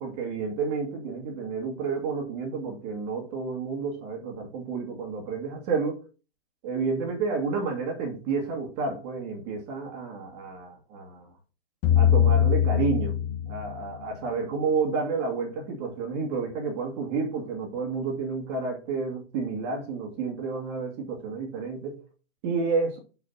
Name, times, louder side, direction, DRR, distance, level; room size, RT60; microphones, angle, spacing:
voice 1, 0.0-6.0 6.6-11.3 12.0-13.1 13.5-22.0 22.4-23.0, right 4 dB, 40° right, 2.2 m, -30 dB
sound 1, 11.8-14.0, left 10 dB, 35° left, 1.2 m, -22 dB
6.3 x 5.9 x 4.2 m
figure-of-eight pair, 115°, 32 cm